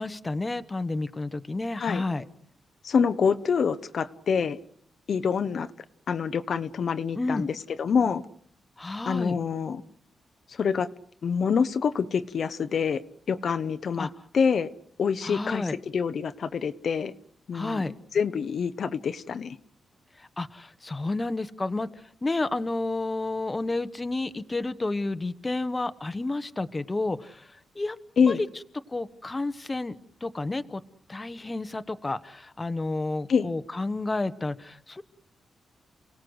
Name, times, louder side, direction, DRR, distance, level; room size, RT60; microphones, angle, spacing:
voice 1, 0.0-2.3 7.1-7.5 8.8-9.4 14.0-14.1 15.2-15.8 17.5-17.9 20.2-21.9 22.2-27.5 27.7-28.0 28.3-28.4 28.9-30.8 31.1-35.0, left 2 dB, 20° left, 11 dB, 1.0 m, -31 dB
voice 2, 2.8-4.6 5.1-5.7 6.1-8.2 9.1-9.8 10.5-10.9 11.2-13.0 13.3-14.7 15.0-17.1 17.5-17.8 18.1-19.6 28.2-28.4 33.3-33.5, left 6 dB, 60° left, 11 dB, 0.9 m, -26 dB
29.5 x 17.5 x 8.0 m, 0.68 s
cardioid pair, 115°, 0 cm